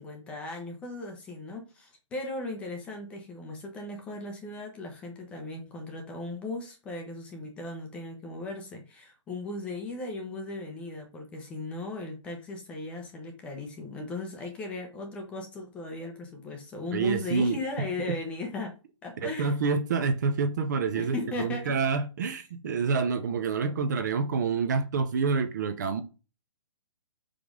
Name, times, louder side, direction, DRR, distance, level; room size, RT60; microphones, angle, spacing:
voice 1, 0.0-18.7 19.0-19.5 20.9-21.7, left 2 dB, 5° left, 0.7 m, -37 dB
voice 2, 16.9-17.6 18.0-18.2 19.2-26.0, right 5 dB, 35° right, 0.6 m, -27 dB
5.2 x 5.1 x 3.6 m
hypercardioid pair, 170°, 17 cm